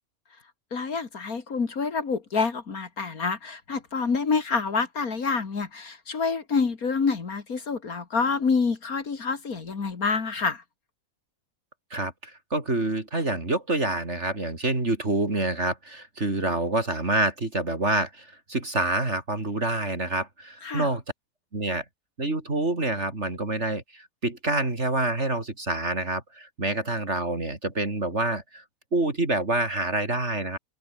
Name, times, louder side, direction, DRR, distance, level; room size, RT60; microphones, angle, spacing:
voice 1, 0.7-10.6 20.6-20.9, left 5 dB, 75° left, 2.7 m, -27 dB
voice 2, 11.9-21.0 21.5-21.8 22.2-28.6 28.9-30.6, right 2 dB, 50° right, 4.1 m, -27 dB
omnidirectional pair, 1.5 m